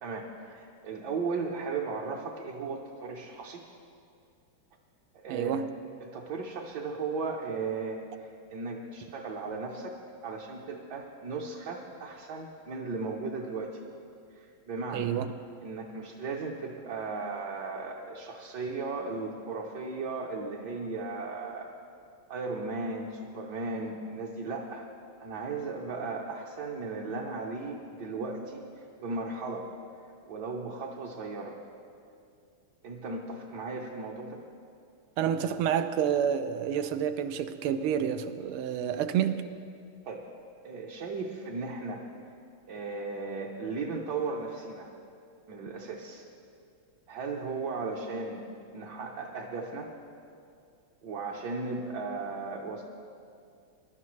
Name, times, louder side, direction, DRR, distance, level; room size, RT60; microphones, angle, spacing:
voice 1, 0.0-3.6 5.1-5.6 6.0-10.0 10.2-13.8 14.3-15.1 15.6-21.7 22.3-24.9 25.2-29.7 30.3-31.6 32.8-34.4 40.0-40.2 40.6-42.0 42.7-44.9 45.5-46.3 47.1-48.4 48.7-49.9 51.0-52.8, right 3 dB, 60° right, 1.4 m, -36 dB
voice 2, 5.3-5.7 14.9-15.3 35.2-39.4, right 9 dB, 80° right, 1.5 m, -29 dB
23.0 x 12.0 x 3.2 m
omnidirectional pair, 2.4 m